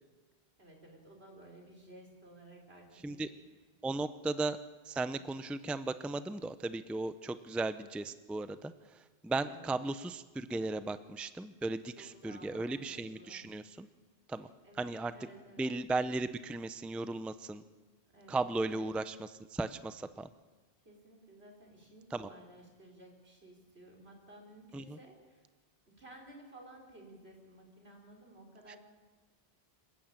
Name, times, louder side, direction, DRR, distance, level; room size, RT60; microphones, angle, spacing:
voice 1, 0.6-3.3 5.1-5.4 9.4-9.8 12.0-13.5 14.6-15.7 18.1-18.9 20.8-25.4 25.9-28.8, right 1 dB, 85° right, 0 dB, 5.0 m, -55 dB
voice 2, 3.8-4.6 4.8-13.9 14.3-14.5 14.8-15.1 15.6-17.6 18.3-20.3 22.1-22.3 24.7-25.0 28.7-28.8, right 2 dB, ahead, 12 dB, 0.5 m, -36 dB
26.5 x 14.5 x 9.0 m, 1.3 s
omnidirectional pair, 1.0 m